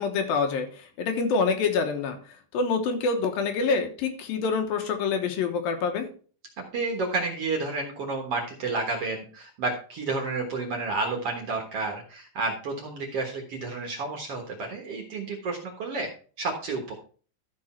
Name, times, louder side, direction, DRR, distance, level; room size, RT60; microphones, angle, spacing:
voice 1, 0.0-2.2 2.5-6.1, left 4 dB, 75° left, 5 dB, 2.9 m, -26 dB
voice 2, 6.7-16.1 16.4-16.9, right 3 dB, 55° right, 1 dB, 1.9 m, -30 dB
13.0 x 5.4 x 4.4 m, 0.40 s
omnidirectional pair, 4.3 m